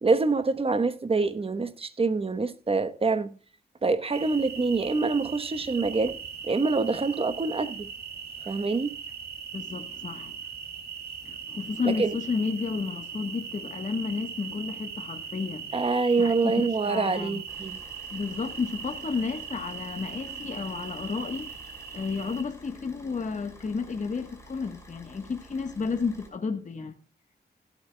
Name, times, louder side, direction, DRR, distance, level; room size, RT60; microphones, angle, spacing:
voice 1, 0.0-3.3 3.8-6.2 6.4-7.9 8.5-9.0 11.8-12.2 15.7-17.8, right 3 dB, 30° right, 1.1 m, -26 dB
sound 1, 4.1-22.4, right 7 dB, 60° right, 2.5 m, -39 dB
voice 2, 9.5-10.3 11.2-15.8 16.2-17.4 18.1-21.5 21.9-26.9, left 5 dB, 45° left, 1.3 m, -32 dB
Car / Idling, 17.5-26.3, equal, 15° left, 5.2 m, -51 dB
16.5 x 11.5 x 2.3 m
wide cardioid pair, 115°, 18 cm